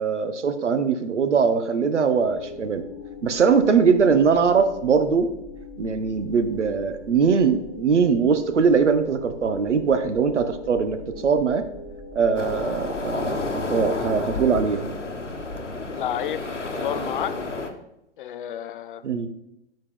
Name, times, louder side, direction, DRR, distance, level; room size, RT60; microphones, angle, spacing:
voice 1, 0.0-2.8 3.2-5.3 5.8-11.0 11.2-11.6 12.1-14.8 19.0-19.3, right 5 dB, 80° right, 9 dB, 0.8 m, -21 dB
sound 1, 2.1-13.6, left 3 dB, 30° left, 1.2 m, -41 dB
sound 2, 12.3-17.7, left 3 dB, 90° left, 0.9 m, -30 dB
voice 2, 15.9-16.4 16.8-17.3 18.2-19.0, left 10 dB, 50° left, 13 dB, 0.5 m, -30 dB
7.1 x 5.2 x 3.7 m, 0.86 s
figure-of-eight pair, 110°, 35 cm